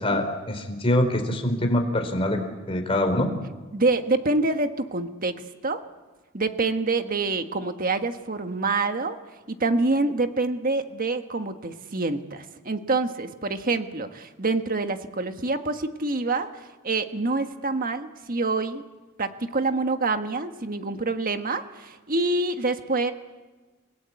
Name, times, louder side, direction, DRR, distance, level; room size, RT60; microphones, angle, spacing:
voice 1, 0.0-2.4 2.7-3.3, left 1 dB, 30° left, 5 dB, 3.8 m, -24 dB
voice 2, 3.7-5.8 6.3-9.2 9.5-18.8 19.2-23.1, right 3 dB, 45° right, 7 dB, 1.4 m, -26 dB
30.0 x 18.0 x 8.5 m, 1.3 s
head